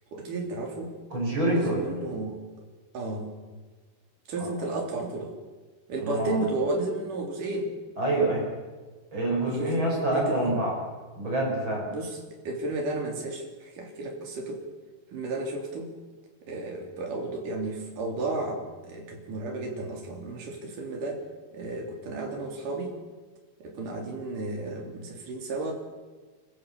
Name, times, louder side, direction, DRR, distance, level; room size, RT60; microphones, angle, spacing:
voice 1, 0.1-1.0 1.4-2.4 2.9-3.3 4.3-5.3 5.9-7.7 9.5-10.6 11.9-12.2 12.4-14.6 15.1-15.9 16.5-21.2 21.5-22.9 23.6-25.7, right 2 dB, 50° right, 2 dB, 4.4 m, -33 dB
voice 2, 1.1-2.0 4.4-4.5 6.0-6.4 8.0-8.5 9.1-10.7 11.2-11.9, right 1 dB, 25° right, -2 dB, 6.0 m, -26 dB
26.0 x 15.0 x 7.0 m, 1.4 s
omnidirectional pair, 5.2 m